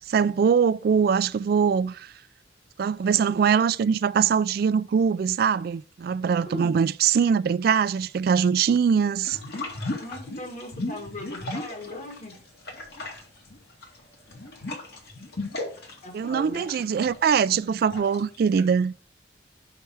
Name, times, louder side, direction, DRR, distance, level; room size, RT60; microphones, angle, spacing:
voice 1, 0.1-2.1 2.8-9.4 16.1-18.9, right 6 dB, 60° right, 0.3 m, -22 dB
voice 2, 6.5-6.8 10.0-12.5 16.0-16.9, left 1 dB, 45° left, 1.8 m, -39 dB
sound 1, 9.2-12.4 12.6-18.6, left 2 dB, 65° left, 2.3 m, -36 dB
7.0 x 5.6 x 4.7 m
head